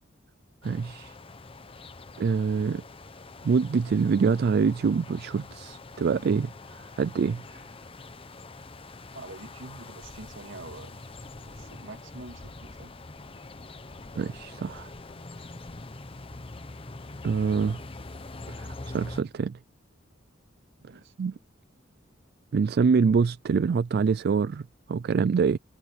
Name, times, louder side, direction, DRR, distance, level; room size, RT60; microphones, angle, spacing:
sound 1, 0.6-19.2, left 2 dB, 30° left, 0.8 m, -44 dB
voice 1, 0.6-1.1 2.2-2.8 3.4-7.6 14.2-14.9 17.2-17.8 18.6-19.6 21.2-21.3 22.5-25.6, right 5 dB, 50° right, 0.3 m, -25 dB
voice 2, 9.1-11.1 11.4-13.0 20.8-21.1, right 2 dB, 75° right, 2.2 m, -45 dB
head